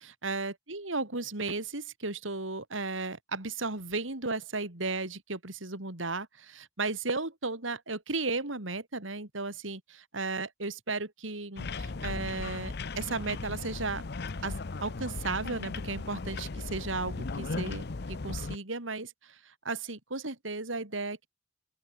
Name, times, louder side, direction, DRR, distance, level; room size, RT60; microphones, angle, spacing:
voice 1, 0.0-14.0 14.4-21.3, right 3 dB, 90° right, 3.5 m, -35 dB
sound 1, 11.6-18.6, left 3 dB, 55° left, 0.8 m, -37 dB
open air
head